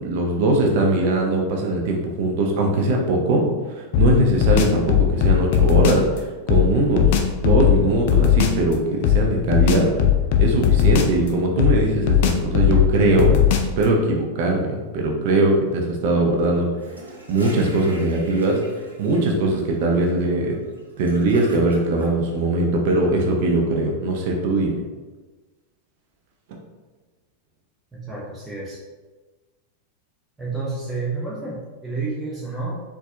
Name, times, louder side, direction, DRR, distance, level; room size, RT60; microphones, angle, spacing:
voice 1, 0.0-7.1 7.4-9.9 10.4-16.7 17.3-18.6 19.0-20.5 21.0-24.8, right 2 dB, 50° right, 0 dB, 0.5 m, -21 dB
sound 1, 3.9-6.1 6.5-8.6 9.0-11.3 11.6-13.8, left 10 dB, 50° left, 0.3 m, -18 dB
Gurgling / Toilet flush, 16.7-22.1, right 1 dB, 80° right, 0.7 m, -41 dB
voice 2, 27.9-28.8 30.4-32.8, right 3 dB, 10° right, -7 dB, 0.7 m, -30 dB
4.1 x 2.3 x 2.4 m, 1.3 s
figure-of-eight pair, 90°, 0 cm